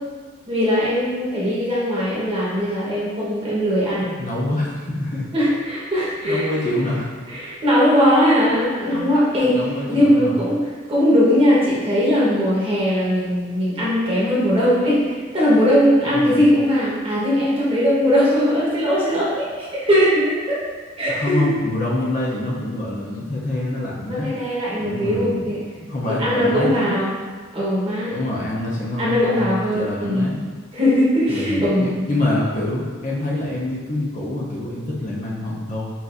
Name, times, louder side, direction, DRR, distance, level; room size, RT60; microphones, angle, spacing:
voice 1, 0.5-4.1 5.3-6.8 7.3-9.6 9.9-10.6 10.9-20.6 21.0-21.5 24.1-25.6 26.2-27.1 27.5-28.1 29.0-30.3 30.7-32.0, equal, 30° right, -8 dB, 1.1 m, -19 dB
voice 2, 4.2-5.3 6.2-7.1 8.9-9.0 9.4-10.4 16.1-16.4 21.1-24.3 24.8-26.9 28.1-30.4 31.3-35.9, left 1 dB, 40° left, -5 dB, 0.6 m, -26 dB
5.5 x 2.5 x 2.5 m, 1.5 s
head